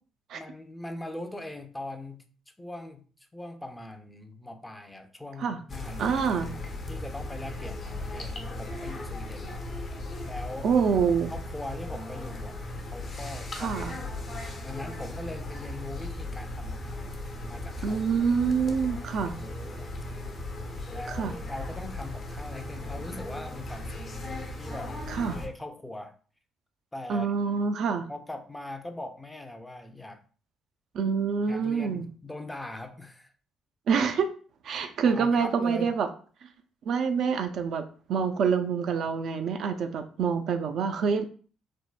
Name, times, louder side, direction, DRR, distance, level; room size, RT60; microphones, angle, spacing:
voice 1, 0.3-2.3 2.6-6.4 6.9-9.5 10.2-10.7 11.3-12.6 12.9-17.1 17.5-18.3 19.2-19.9 20.9-24.1 24.6-24.9 25.3-26.1 26.9-27.3 28.1-30.2 31.5-33.3 35.0-35.9, left 2 dB, 10° left, 6 dB, 0.5 m, -41 dB
sound 1, 5.7-25.5, left 1 dB, 45° left, 0.7 m, -37 dB
voice 2, 6.0-6.5 10.6-11.3 13.6-14.0 17.8-19.4 21.1-21.3 25.1-25.4 27.1-28.1 30.9-32.1 33.9-34.3 34.6-36.1 36.4-36.5 36.9-41.2, right 6 dB, 65° right, 7 dB, 0.3 m, -26 dB
3.4 x 2.0 x 2.3 m, 0.40 s
supercardioid pair, 60°, 0 cm